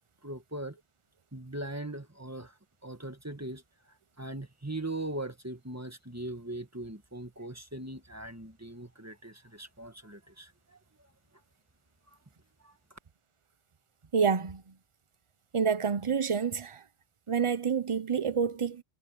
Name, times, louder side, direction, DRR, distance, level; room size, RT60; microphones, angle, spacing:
voice 1, 0.2-0.8 1.3-2.5 2.8-3.6 4.2-10.8 12.6-12.7, right 1 dB, 15° right, 1.6 m, -40 dB
voice 2, 14.1-14.7 15.5-16.8 17.3-18.8, right 6 dB, 30° right, 0.8 m, -28 dB
omnidirectional pair, 1.1 m